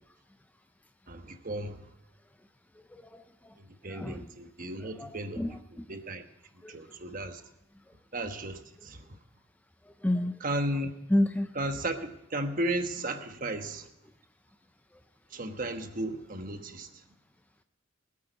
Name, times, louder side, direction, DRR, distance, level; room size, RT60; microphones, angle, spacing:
voice 1, 1.1-1.8 3.6-6.2 6.7-7.4 8.1-9.2 10.4-10.9 11.5-13.9 15.3-17.0, right 1 dB, 45° right, 7 dB, 1.2 m, -35 dB
voice 2, 2.9-3.2 3.9-4.2 5.0-5.1 5.4-5.8 6.6-6.8 10.0-10.3 11.1-11.5, left 1 dB, 10° left, 8 dB, 0.5 m, -29 dB
20.0 x 8.6 x 5.2 m, 0.89 s
head